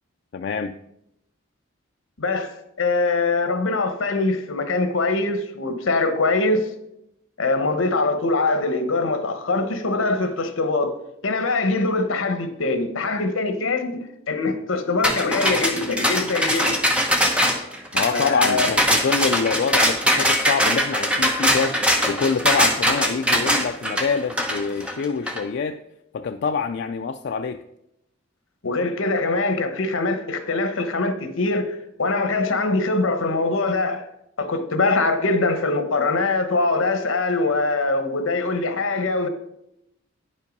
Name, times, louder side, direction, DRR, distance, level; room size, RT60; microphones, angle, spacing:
voice 1, 0.3-0.7 17.9-25.8 26.1-27.6, left 5 dB, 55° left, 0.3 m, -26 dB
voice 2, 2.2-6.7 7.4-10.9 11.2-14.0 14.3-16.7 18.1-18.7 28.6-34.1 34.4-39.3, left 3 dB, 80° left, 1.0 m, -23 dB
sound 1, 15.0-25.4, equal, 5° right, 0.8 m, -21 dB
9.7 x 5.5 x 5.2 m
head